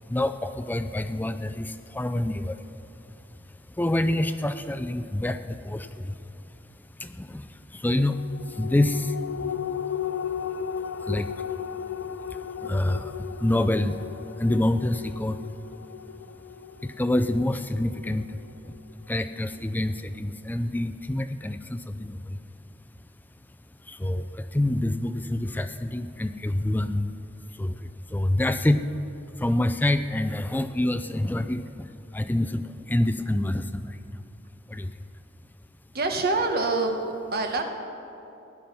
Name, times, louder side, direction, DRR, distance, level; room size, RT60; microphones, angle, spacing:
voice 1, 0.1-2.6 3.7-6.2 7.0-9.5 10.7-11.5 12.0-15.4 16.8-18.8 19.1-22.4 23.8-27.2 27.5-28.8 29.4-34.0 34.7-35.0, left 1 dB, 10° left, 10 dB, 0.3 m, -27 dB
sound 1, 8.1-18.9 19.3-19.4, left 8 dB, 85° left, 0.4 m, -35 dB
voice 2, 35.9-37.6, right 3 dB, 55° right, 4 dB, 1.2 m, -26 dB
16.0 x 11.0 x 5.5 m, 2.9 s
head